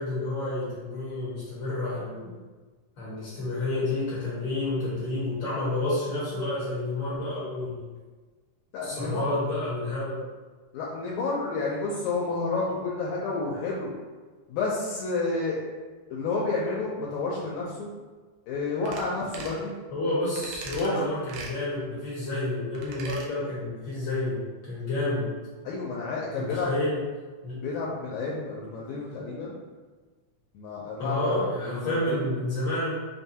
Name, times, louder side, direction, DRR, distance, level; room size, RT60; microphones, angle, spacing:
voice 1, 0.0-2.3 3.0-7.9 8.8-10.2 19.9-24.4 24.7-25.3 26.4-27.0 27.4-27.6 31.0-32.9, left 2 dB, 60° left, -9 dB, 1.2 m, -29 dB
voice 2, 8.7-9.3 10.7-13.9 14.5-15.6 16.1-17.9 18.5-19.7 20.8-21.0 25.7-26.7 27.6-29.6 30.5-32.2, left 3 dB, 80° left, -4 dB, 1.8 m, -30 dB
sound 1, 18.9-19.1 19.3-19.6 20.4-20.9 21.3-21.6 22.8-23.3 23.6-23.7, right 4 dB, 90° right, 2.1 m, -40 dB
5.3 x 2.2 x 2.7 m, 1.4 s
omnidirectional pair, 3.4 m